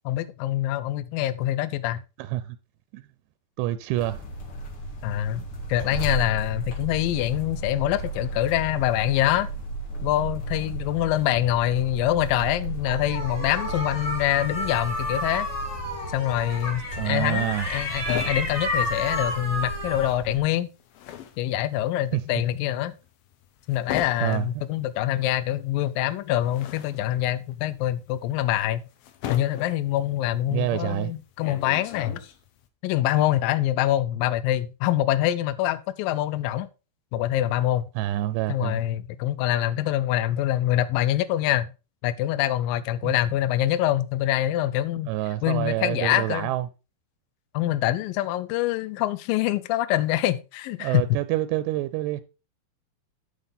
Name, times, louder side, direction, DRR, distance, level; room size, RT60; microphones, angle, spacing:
voice 1, 0.1-2.0 5.0-5.4 5.7-9.5 10.0-15.5 16.1-20.7 21.4-22.9 23.7-28.8 29.3-32.2 32.8-36.7 37.1-37.9 38.5-41.7 42.0-45.1 45.4-46.5 47.5-51.2, left 13 dB, 90° left, 2.0 m, -25 dB
voice 2, 2.2-2.6 2.9-3.0 3.6-4.2 17.0-17.7 22.1-22.2 24.2-24.5 30.5-31.1 38.0-38.8 43.0-43.1 45.1-46.7 50.8-52.2, right 14 dB, 85° right, 2.7 m, -27 dB
sound 1, 4.0-20.4, right 1 dB, 50° left, 1.9 m, -35 dB
sound 2, 12.9-20.1, left 1 dB, 10° left, 3.1 m, -31 dB
sound 3, 17.2-19.8 20.0-32.7, left 10 dB, 70° left, 2.4 m, -39 dB
9.2 x 7.4 x 3.9 m
omnidirectional pair, 4.9 m